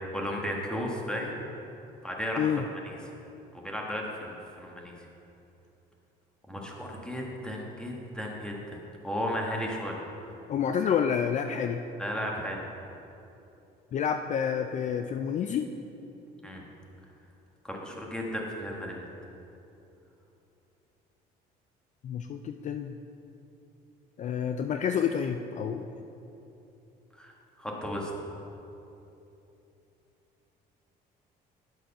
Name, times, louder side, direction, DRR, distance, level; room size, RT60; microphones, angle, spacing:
voice 1, 0.1-1.3 2.0-2.5 2.8-3.0 3.6-4.9 6.5-8.8 9.0-10.0 12.0-12.6 16.4-16.6 17.6-19.1 27.2-28.1, equal, 5° left, -1 dB, 1.5 m, -34 dB
voice 2, 10.5-11.8 13.9-15.7 22.0-23.0 24.2-25.9, left 8 dB, 45° left, 7 dB, 0.4 m, -29 dB
9.2 x 6.3 x 5.6 m, 3.0 s
cardioid pair, 110°, 17 cm